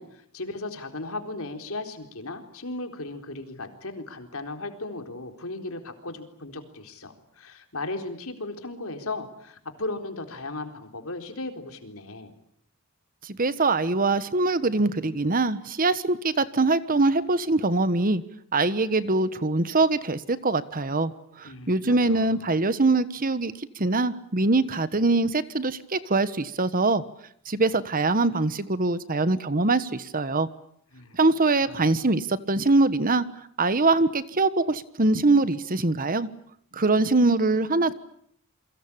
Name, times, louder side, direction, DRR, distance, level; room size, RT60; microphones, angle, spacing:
voice 1, 0.0-12.3 21.4-22.6 30.9-31.2 31.5-31.9, left 2 dB, 70° left, 6 dB, 4.1 m, -36 dB
voice 2, 13.2-18.2 18.5-21.1 21.4-27.0 27.5-30.5 31.1-33.2 33.6-36.3 36.7-37.9, right 3 dB, 40° right, 14 dB, 1.3 m, -23 dB
28.5 x 23.5 x 8.7 m, 0.67 s
head